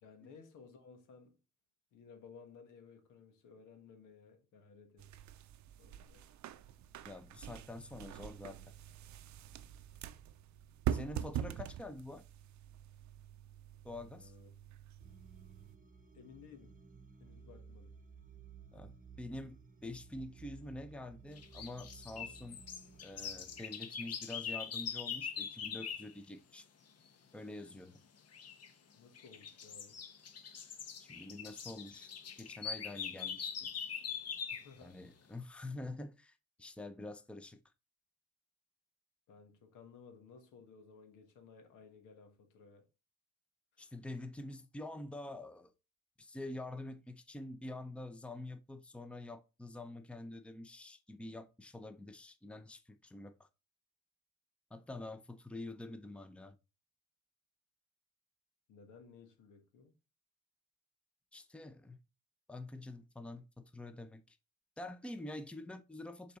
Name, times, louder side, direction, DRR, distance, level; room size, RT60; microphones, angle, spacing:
voice 1, 0.0-1.4 1.9-5.1 5.8-6.3 14.1-14.5 16.1-16.8 17.2-18.0 29.0-30.0 34.5-35.0 39.3-42.9 43.8-43.9 58.7-59.9, left 5 dB, 85° left, 1.5 m, -57 dB
sound 1, 5.0-15.8, right 10 dB, 70° right, 0.6 m, -44 dB
voice 2, 7.0-8.7 10.9-12.2 13.8-14.3 18.7-18.9 19.2-22.6 23.0-26.7 27.3-28.0 31.0-32.1 32.4-33.7 34.8-37.6 43.8-45.7 46.2-53.5 54.7-56.6 61.3-62.0 62.5-64.4 64.8-66.4, left 2 dB, 5° left, 0.6 m, -47 dB
sound 2, 15.0-23.7, right 5 dB, 25° right, 1.0 m, -56 dB
sound 3, 21.4-26.1 28.3-28.7 29.1-34.7, left 7 dB, 55° left, 1.0 m, -42 dB
6.6 x 4.0 x 3.7 m
cardioid pair, 90°, 30 cm